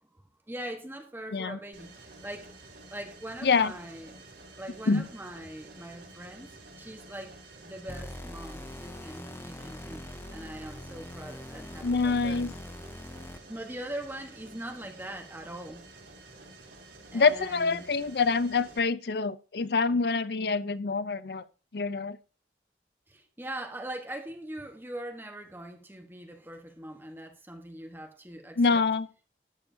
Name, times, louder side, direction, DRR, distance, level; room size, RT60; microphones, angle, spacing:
voice 1, 0.5-2.5 2.9-4.2 4.6-6.5 6.8-7.4 7.6-12.4 13.5-15.8 17.1-17.9 23.1-28.8, right 1 dB, 10° right, 1.2 m, -41 dB
Mechanisms, 1.7-18.8, right 2 dB, 75° right, 4.6 m, -51 dB
voice 2, 3.4-3.7 4.9-5.1 11.8-12.5 17.1-21.4 21.7-22.2 28.6-29.1, left 4 dB, 60° left, 0.6 m, -26 dB
sound 1, 7.9-13.6, left 1 dB, 15° left, 0.5 m, -43 dB
12.5 x 9.6 x 2.7 m
head